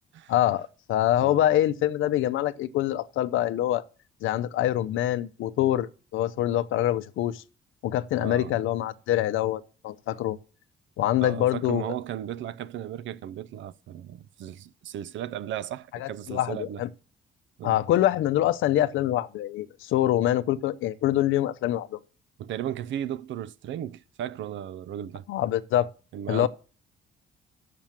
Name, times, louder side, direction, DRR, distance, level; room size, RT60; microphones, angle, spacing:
voice 1, 0.3-3.8 4.2-7.4 7.8-10.4 11.0-12.0 16.0-16.9 17.6-22.0 25.3-25.9 26.3-26.5, left 13 dB, 80° left, 0.6 m, -25 dB
voice 2, 8.2-8.5 11.2-16.8 17.6-17.8 22.4-25.2 26.1-26.5, right 11 dB, 75° right, 0.5 m, -35 dB
7.3 x 6.8 x 7.3 m
cardioid pair, 90°, 20 cm